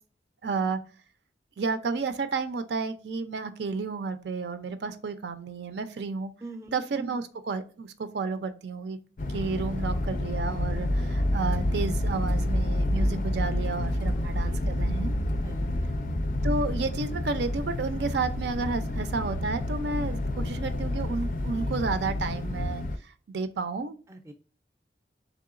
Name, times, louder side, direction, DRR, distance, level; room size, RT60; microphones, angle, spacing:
voice 1, 0.4-0.8 1.6-6.3 6.7-9.0 9.3-15.1 16.4-24.0, right 4 dB, 75° right, 11 dB, 0.4 m, -31 dB
voice 2, 6.4-6.8 14.2-14.7 15.3-15.9 24.1-24.3, right 1 dB, 15° right, 6 dB, 0.4 m, -44 dB
sound 1, 9.2-23.0, left 1 dB, 45° left, 0.4 m, -29 dB
3.7 x 3.4 x 2.4 m, 0.38 s
head